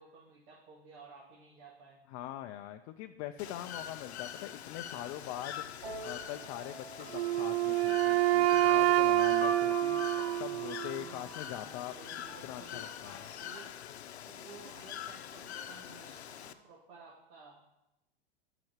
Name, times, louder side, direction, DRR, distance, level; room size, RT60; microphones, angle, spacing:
voice 1, 0.0-2.0 10.8-13.8 14.3-17.6, right 4 dB, 55° right, -4 dB, 2.3 m, -55 dB
voice 2, 2.1-11.9 12.4-13.3, left 13 dB, 35° left, 6 dB, 0.5 m, -43 dB
Bird / Water, 3.4-16.5, left 10 dB, 80° left, 0.8 m, -44 dB
sound 1, 5.8-13.4, equal, 30° right, 2.2 m, -45 dB
Wind instrument woodwind instrument, 7.1-11.1, right 14 dB, 75° right, 0.5 m, -27 dB
7.7 x 5.9 x 7.3 m, 0.89 s
hypercardioid pair, 125°, 32 cm